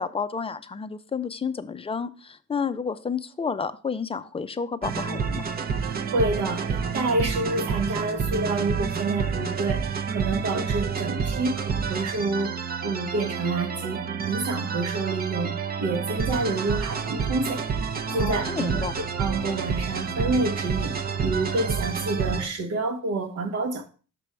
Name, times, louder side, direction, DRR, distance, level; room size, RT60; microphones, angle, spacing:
voice 1, 0.0-5.5 18.1-18.9, left 5 dB, 20° left, 0.5 m, -31 dB
sound 1, 4.8-22.5, right 6 dB, 30° right, 0.7 m, -29 dB
voice 2, 5.8-15.5 15.8-17.6 18.1-18.9 19.2-20.9 21.2-23.9, right 2 dB, 55° right, 1.0 m, -28 dB
6.1 x 6.0 x 3.3 m
cardioid pair, 90°, 30 cm